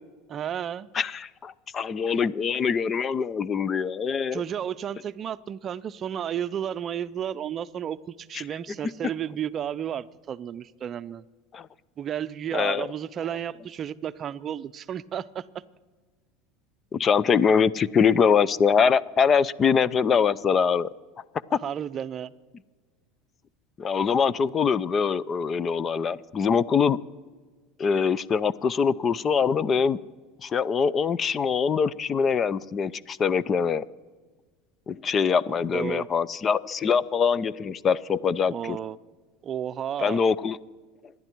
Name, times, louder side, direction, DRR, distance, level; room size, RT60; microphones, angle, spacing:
voice 1, 0.3-0.9 4.3-11.2 12.0-15.6 21.6-22.3 35.7-36.1 38.5-39.0 39.4-40.2, right 9 dB, 35° right, 14 dB, 0.6 m, -32 dB
voice 2, 0.9-4.4 11.5-11.7 12.5-12.9 16.9-20.9 23.8-27.0 27.8-30.0 30.4-33.8 34.9-38.8 40.0-40.6, left 6 dB, 30° left, 20 dB, 0.6 m, -23 dB
26.5 x 11.0 x 4.6 m, 1.4 s
supercardioid pair, 120°, 0 cm